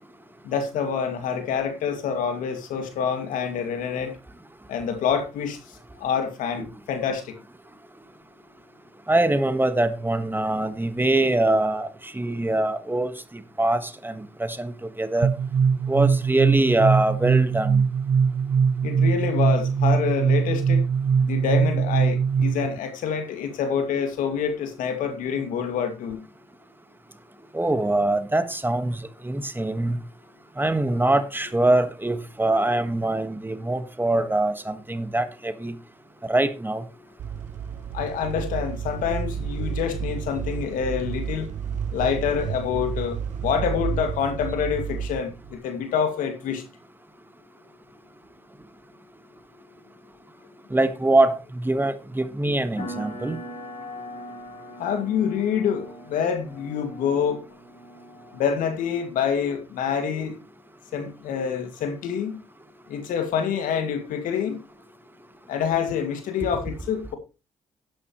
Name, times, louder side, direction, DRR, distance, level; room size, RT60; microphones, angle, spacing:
voice 1, 0.4-4.1 4.7-7.4 18.8-20.8 21.2-26.2 37.9-41.5 41.9-46.6 54.8-57.4 58.3-60.4 60.9-62.4 62.9-64.6 65.5-67.1, left 7 dB, 80° left, 2.2 m, -27 dB
voice 2, 9.1-15.3 15.9-17.8 27.5-30.0 30.6-35.8 36.2-36.8 50.7-53.4, right 2 dB, 15° right, 1.5 m, -23 dB
sound 1, 15.2-22.8, right 6 dB, 40° right, 0.4 m, -21 dB
sound 2, 37.2-45.6, right 8 dB, 65° right, 0.8 m, -31 dB
sound 3, 52.8-59.0, equal, 60° left, 6.2 m, -41 dB
12.0 x 10.5 x 3.1 m
supercardioid pair, 55°, 14 cm